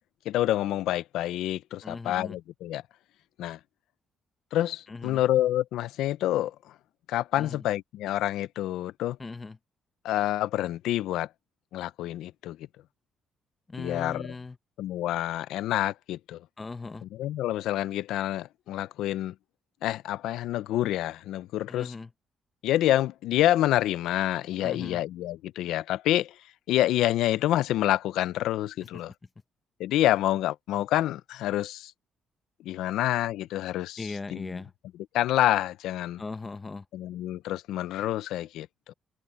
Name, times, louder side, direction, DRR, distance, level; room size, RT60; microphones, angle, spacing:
voice 1, 0.2-2.8 3.4-3.6 4.5-6.7 7.1-9.2 10.0-11.3 11.7-12.7 13.8-14.3 14.8-16.4 17.0-19.3 19.8-21.9 22.6-26.4 26.7-29.1 29.8-31.9 32.6-34.6 35.1-36.2 36.9-38.9, left 14 dB, 90° left, 0.6 m, -27 dB
voice 2, 1.8-2.4 4.9-5.2 7.4-7.6 9.2-9.6 13.7-14.6 16.6-17.0 21.7-22.1 24.6-25.0 34.0-34.7 36.2-36.8, left 3 dB, 25° left, 1.1 m, -38 dB
cardioid pair, 90°, 0 cm